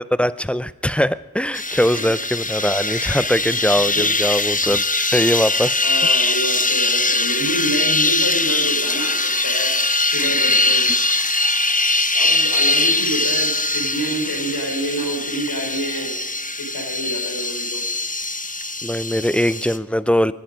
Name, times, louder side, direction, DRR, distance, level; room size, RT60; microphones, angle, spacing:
voice 1, 0.0-5.9 18.8-20.3, equal, 5° left, 16 dB, 0.5 m, -21 dB
sound 1, 1.5-19.8, left 2 dB, 25° left, 0.9 m, -21 dB
voice 2, 5.8-9.7 10.0-10.9 12.1-16.1 16.6-17.8, equal, 85° left, 0 dB, 4.5 m, -27 dB
24.5 x 11.5 x 5.2 m, 1.2 s
cardioid pair, 40°, 35 cm